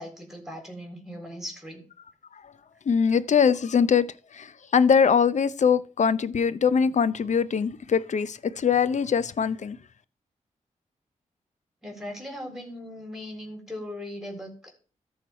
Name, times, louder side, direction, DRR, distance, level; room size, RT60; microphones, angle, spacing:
voice 1, 0.0-1.8 11.8-14.7, left 1 dB, 5° right, 4.0 m, -39 dB
voice 2, 2.9-4.1 4.3-9.8, left 6 dB, 60° left, 0.7 m, -22 dB
14.0 x 4.6 x 4.4 m
cardioid pair, 75°, 13 cm